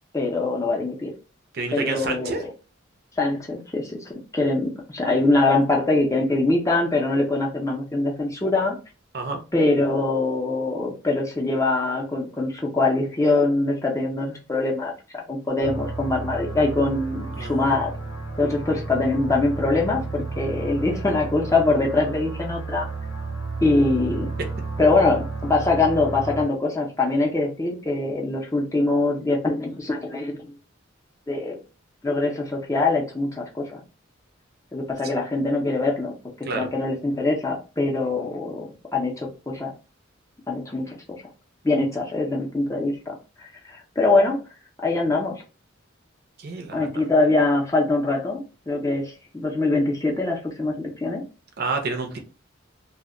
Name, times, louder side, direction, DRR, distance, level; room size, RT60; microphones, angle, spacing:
voice 1, 0.1-1.1 1.7-2.4 3.2-8.8 9.5-14.9 15.3-17.9 18.4-22.9 23.6-24.3 24.8-30.5 31.3-31.6 32.0-33.8 34.7-39.7 40.5-41.0 41.6-44.4 44.8-45.4 46.7-51.2, left 2 dB, 15° left, 0 dB, 0.5 m, -23 dB
voice 2, 1.5-2.4 9.1-9.4 17.4-17.8 36.4-36.7 46.4-46.9 51.6-52.2, right 4 dB, 50° right, 4 dB, 0.5 m, -29 dB
sound 1, 15.6-26.4, right 3 dB, 80° left, 0.8 m, -32 dB
2.1 x 2.1 x 3.6 m, 0.33 s
head